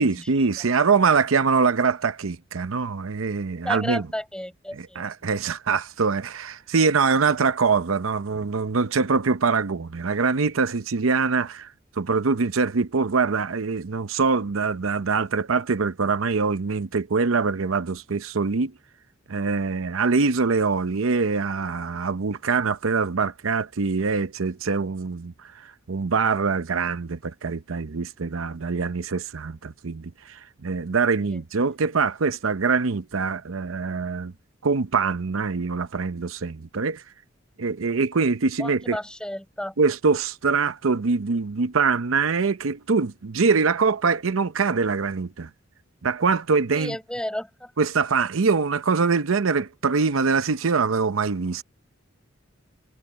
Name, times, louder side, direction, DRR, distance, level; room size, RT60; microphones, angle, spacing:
voice 1, 0.0-4.1 4.7-18.7 19.3-34.3 34.6-37.0 37.6-39.0 39.8-45.5 46.0-47.0 47.8-51.6, right 4 dB, 85° right, 0.7 m, -24 dB
voice 2, 3.6-5.1 31.2-31.4 38.6-39.7 46.8-47.7, left 1 dB, 5° left, 4.6 m, -33 dB
head